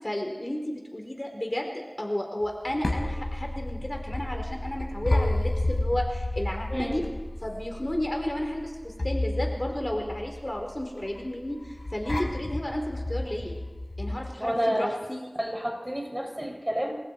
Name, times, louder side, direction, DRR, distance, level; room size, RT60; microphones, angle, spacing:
voice 1, 0.0-7.0 7.4-13.5 14.0-15.3, left 1 dB, 30° left, 2 dB, 4.4 m, -32 dB
sound 1, 2.4-14.3, left 1 dB, 65° left, 4.7 m, -31 dB
voice 2, 6.7-7.0 14.4-15.0 15.4-16.9, equal, 20° right, 1 dB, 7.2 m, -29 dB
29.0 x 27.0 x 4.7 m, 1.3 s
wide cardioid pair, 45°, 0 cm